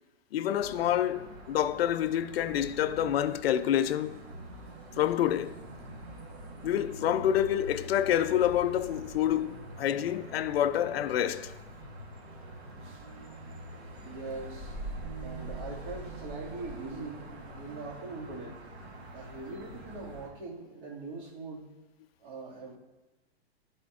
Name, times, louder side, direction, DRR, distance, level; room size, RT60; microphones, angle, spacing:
voice 1, 0.3-4.2 5.0-5.6 6.6-11.5, left 11 dB, 70° left, 0.5 m, -28 dB
sound 1, 0.5-20.3, right 1 dB, 80° right, 1.6 m, -44 dB
voice 2, 14.0-14.8 15.2-17.2 17.6-18.6 19.1-21.7 22.2-22.8, right 3 dB, 50° right, 2.3 m, -42 dB
11.0 x 4.3 x 2.5 m
hypercardioid pair, 140°, 31 cm